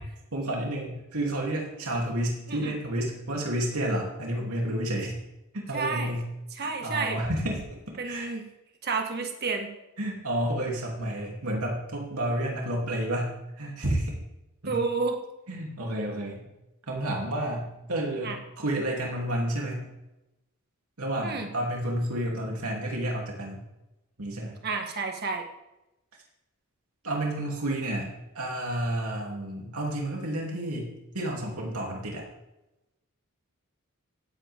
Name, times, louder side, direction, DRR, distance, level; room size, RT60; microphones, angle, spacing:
voice 1, 0.3-5.2 5.5-6.3 6.6-8.3 10.0-14.1 14.6-14.8 15.5-16.4 16.9-19.9 21.0-23.6 24.2-24.5 27.0-28.1 28.3-32.2, right 1 dB, 80° right, -2 dB, 3.1 m, -30 dB
voice 2, 5.7-6.2 6.5-7.2 8.0-8.4 8.8-9.7 14.6-15.2 18.2-18.4 21.2-21.5 24.6-25.5, right 4 dB, 45° right, 3 dB, 1.8 m, -30 dB
16.0 x 8.4 x 3.7 m, 0.94 s
head